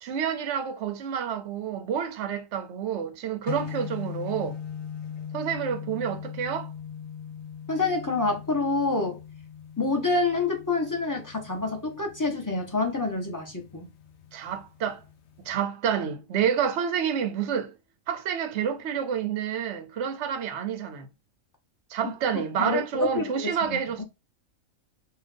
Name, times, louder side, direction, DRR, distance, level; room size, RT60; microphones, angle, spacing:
voice 1, 0.0-4.6 5.3-6.7 14.3-15.0 15.4-17.7 18.1-21.1 21.9-24.0, right 7 dB, 60° right, 0.9 m, -29 dB
sound 1, 3.5-15.5, left 8 dB, 60° left, 0.8 m, -40 dB
voice 2, 7.7-9.2 9.8-13.9 22.0-23.8, left 3 dB, 15° left, 0.9 m, -27 dB
3.8 x 2.6 x 3.4 m
omnidirectional pair, 1.4 m